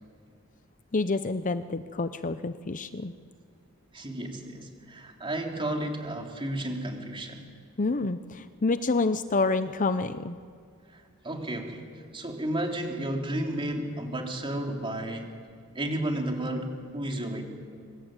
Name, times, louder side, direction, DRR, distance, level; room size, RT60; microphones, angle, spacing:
voice 1, 0.9-3.1 7.8-10.4, left 3 dB, 40° left, 11 dB, 0.7 m, -28 dB
voice 2, 3.9-7.4 10.9-15.3 15.7-17.4, right 1 dB, 25° right, 2 dB, 3.4 m, -32 dB
25.0 x 24.5 x 9.0 m, 2.2 s
head